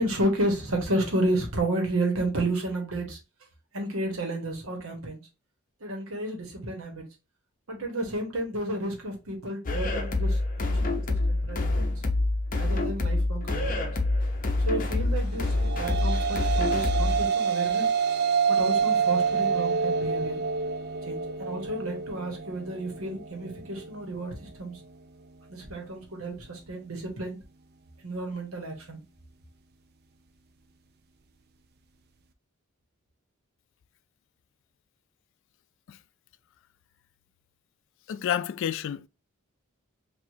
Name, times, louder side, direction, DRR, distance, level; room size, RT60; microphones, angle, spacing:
voice 1, 0.0-3.2 3.7-5.2 5.8-7.1 7.7-11.9 12.5-13.9 14.6-17.9 18.5-20.4 21.0-24.8 25.5-27.4 28.0-29.0, right 1 dB, 80° right, 1.3 m, -31 dB
sound 1, 9.7-17.3, left 2 dB, 40° left, 0.7 m, -26 dB
sound 2, 15.4-23.9, right 6 dB, 50° right, 0.4 m, -27 dB
voice 2, 38.1-39.1, left 9 dB, 60° left, 0.3 m, -30 dB
4.8 x 2.6 x 2.7 m
head